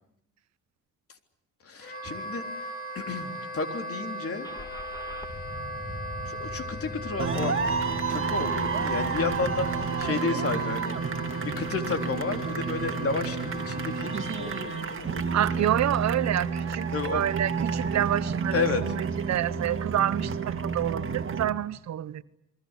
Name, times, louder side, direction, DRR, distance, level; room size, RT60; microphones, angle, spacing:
voice 1, 1.6-4.5 6.2-7.6 8.1-11.0 11.6-15.7 16.9-17.2 18.5-18.8, left 4 dB, 50° left, 3.6 m, -32 dB
Wind instrument woodwind instrument, 1.8-15.0, left 1 dB, 30° left, 6.4 m, -38 dB
Car / Engine starting, 4.4-9.9, left 1 dB, 10° left, 3.5 m, -41 dB
sound 1, 7.2-21.5, right 5 dB, 45° right, 2.3 m, -30 dB
voice 2, 10.2-10.6 15.3-22.2, right 11 dB, 60° right, 1.0 m, -28 dB
28.5 x 22.5 x 8.2 m
cardioid pair, 90°, 30 cm